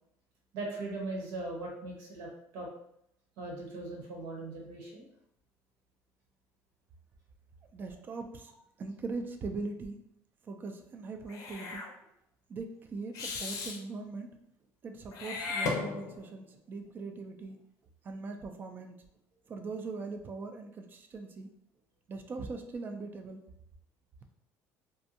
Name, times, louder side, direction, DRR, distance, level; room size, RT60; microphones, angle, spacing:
voice 1, 0.5-2.7 3.4-5.1, right 2 dB, 80° right, -1 dB, 1.0 m, -39 dB
voice 2, 7.7-8.5 8.8-10.0 10.4-11.9 12.5-14.3 14.8-17.6 18.0-19.0 19.5-21.5 22.1-23.4, right 3 dB, 30° right, 6 dB, 0.3 m, -40 dB
Meow / Hiss, 11.3-11.9 13.1-13.8 15.1-16.3, left 4 dB, 60° left, 0.5 m, -36 dB
2.6 x 2.2 x 2.7 m, 0.74 s
cardioid pair, 125°, 6 cm